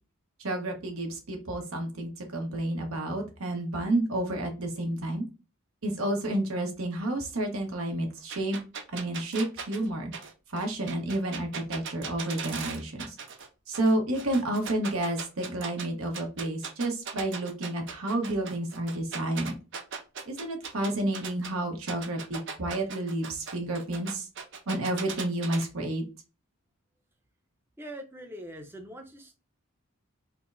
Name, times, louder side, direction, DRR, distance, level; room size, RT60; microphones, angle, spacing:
voice 1, 0.4-5.2 5.8-8.6 8.9-10.1 10.5-13.1 13.7-19.6 20.3-24.3 24.7-26.0, right 1 dB, 75° right, 3 dB, 1.0 m, -30 dB
sound 1, 8.3-13.5 13.7-15.8 16.1-21.5 21.9-25.6, right 6 dB, 55° right, 0.6 m, -38 dB
voice 2, 27.8-29.3, equal, 10° right, 4 dB, 0.5 m, -42 dB
4.6 x 2.0 x 2.5 m, 0.31 s
head